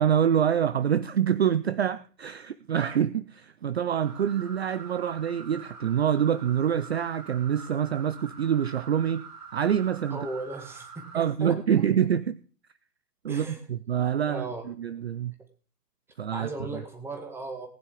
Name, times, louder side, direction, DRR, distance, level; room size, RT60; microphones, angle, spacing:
voice 1, 0.0-9.3 9.5-10.2 11.1-12.4 13.2-15.3 16.2-16.5, right 9 dB, 40° right, 0.6 m, -26 dB
sound 1, 4.0-11.3, right 6 dB, 65° right, 4.5 m, -45 dB
voice 2, 10.1-12.1 13.3-13.7 14.3-14.7 15.4-15.5 16.3-17.7, right 3 dB, 5° right, 1.7 m, -37 dB
19.0 x 9.6 x 3.8 m
figure-of-eight pair, 125°, 49 cm